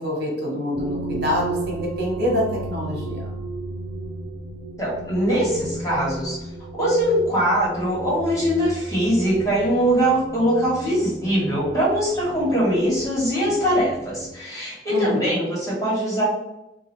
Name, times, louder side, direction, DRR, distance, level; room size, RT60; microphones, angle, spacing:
voice 1, 0.0-3.3 14.9-15.4, equal, 60° right, -2 dB, 1.3 m, -26 dB
sound 1, 0.7-14.3, right 2 dB, 85° right, 0.5 m, -35 dB
voice 2, 4.8-6.4 6.7-16.2, equal, 20° left, -7 dB, 1.4 m, -22 dB
4.0 x 2.3 x 3.2 m, 0.94 s
head